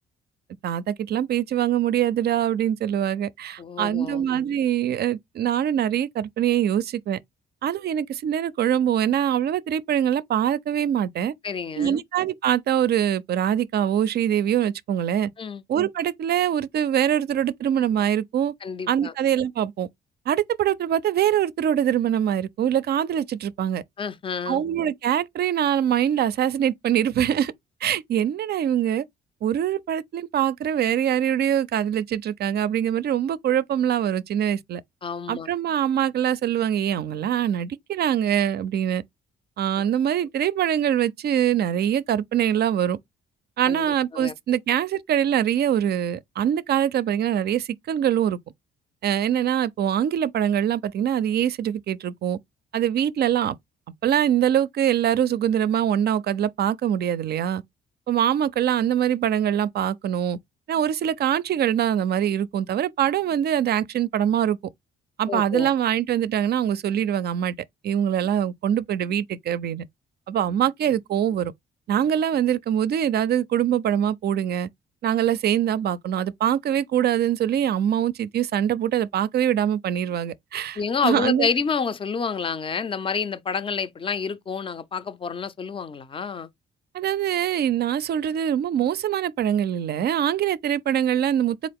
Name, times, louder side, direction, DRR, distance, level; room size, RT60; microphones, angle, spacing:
voice 1, 0.6-7.2 7.6-11.3 11.8-15.3 15.7-18.5 18.9-19.9 20.3-23.8 24.5-27.5 27.8-29.0 29.4-34.8 35.3-39.0 39.6-43.0 43.6-48.4 49.0-52.4 52.7-53.6 54.0-57.6 58.1-60.4 60.7-64.6 65.2-67.6 67.8-69.9 70.3-71.5 71.9-74.7 75.0-81.5 86.9-91.7, right 10 dB, 55° right, 0.4 m, -23 dB
voice 2, 3.6-4.3 11.4-12.0 15.4-15.6 18.6-19.1 24.0-24.6 35.0-35.5 43.7-44.3 65.3-65.7 80.8-86.5, left 5 dB, 25° left, 0.4 m, -29 dB
3.8 x 2.4 x 3.5 m
cardioid pair, 90°, 20 cm